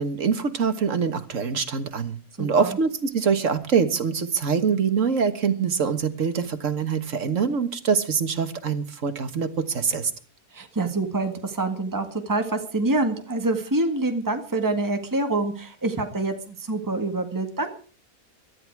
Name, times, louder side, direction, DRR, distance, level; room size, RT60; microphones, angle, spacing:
voice 1, 0.0-10.1, right 6 dB, 60° right, 9 dB, 1.9 m, -24 dB
voice 2, 2.4-2.8 10.5-17.7, right 2 dB, 15° right, 5 dB, 1.8 m, -26 dB
17.5 x 13.0 x 4.8 m, 0.40 s
omnidirectional pair, 1.5 m